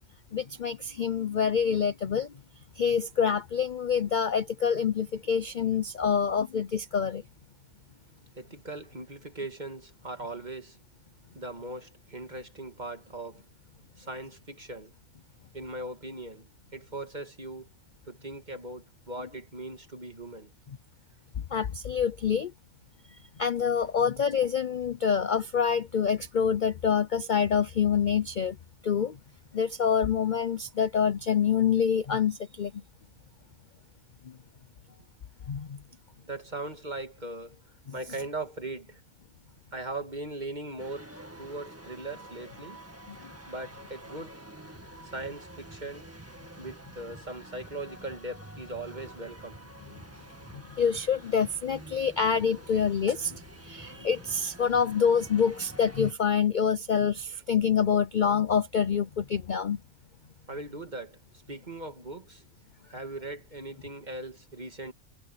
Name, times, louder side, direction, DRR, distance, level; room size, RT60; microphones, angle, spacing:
voice 1, 0.3-2.3 2.8-7.2 21.5-22.5 23.4-28.5 28.8-29.1 29.5-32.7 35.5-35.8 43.1-43.2 50.8-53.3 53.6-59.8, left 7 dB, 45° left, 0.6 m, -26 dB
voice 2, 8.4-10.8 11.3-13.4 14.0-14.9 15.5-17.7 18.1-20.5 36.2-37.6 37.9-39.0 39.7-41.1 41.4-42.8 43.5-44.4 45.0-46.1 46.6-49.6 50.1-50.3 57.3-57.4 60.5-61.2 61.5-62.4 62.9-64.9, right 2 dB, 30° right, 2.4 m, -39 dB
sound 1, 40.8-56.1, right 1 dB, 10° right, 1.7 m, -48 dB
omnidirectional pair, 1.5 m